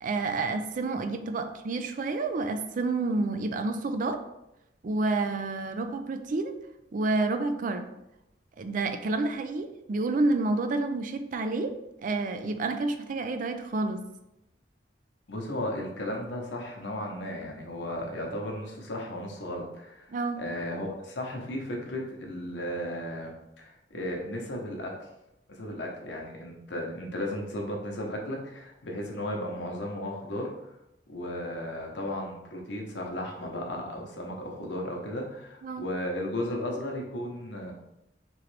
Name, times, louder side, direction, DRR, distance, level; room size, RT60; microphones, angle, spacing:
voice 1, 0.0-4.2 4.8-6.6 6.9-7.9 8.6-14.0 20.1-20.4 35.6-35.9, right 3 dB, 50° right, 8 dB, 0.4 m, -29 dB
voice 2, 15.3-24.9 25.5-30.7 31.1-37.7, left 1 dB, 80° left, 1 dB, 0.9 m, -35 dB
3.8 x 3.1 x 3.2 m, 0.87 s
head